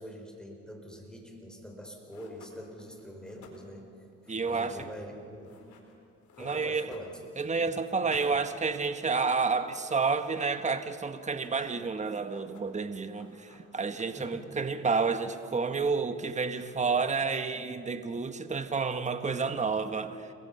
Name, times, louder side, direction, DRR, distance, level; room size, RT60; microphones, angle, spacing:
voice 1, 0.0-3.9 4.5-5.6 6.4-7.2 7.7-7.9 14.1-14.6, equal, 5° left, 1 dB, 5.5 m, -45 dB
sound 1, 1.7-1.8 2.1-7.6 7.9-9.5 9.7-9.8 10.0-11.0 11.3-11.9 12.1-12.9 13.1-14.4, left 5 dB, 70° left, 4.4 m, -55 dB
voice 2, 4.3-4.9 6.4-6.9 7.4-20.3, right 4 dB, 25° right, 9 dB, 1.3 m, -30 dB
29.5 x 22.0 x 5.7 m, 2.6 s
cardioid pair, 90°, 30 cm